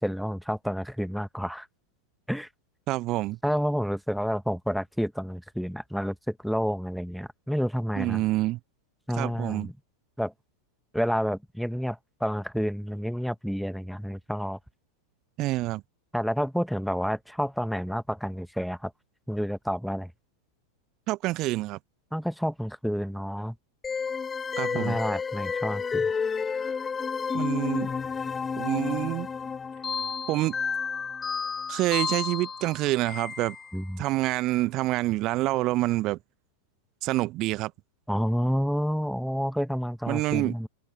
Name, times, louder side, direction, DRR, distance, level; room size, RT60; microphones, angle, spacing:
voice 1, 0.0-1.7 2.3-2.5 3.4-8.2 9.1-9.7 10.2-10.3 10.9-14.6 16.1-18.9 19.3-20.1 22.1-23.5 24.7-26.1 33.7-34.0 38.1-40.7, equal, ahead, 1.1 m, -29 dB
voice 2, 2.9-3.4 8.0-8.6 9.1-9.7 15.4-15.8 21.1-21.8 24.6-25.0 27.3-27.9 28.6-29.3 30.3-30.5 31.7-33.5 34.0-36.2 37.0-37.7 40.1-40.5, right 18 dB, 40° right, 0.9 m, -27 dB
sound 1, 23.8-34.0, left 5 dB, 15° left, 3.4 m, -31 dB
figure-of-eight pair, 90°, 0 cm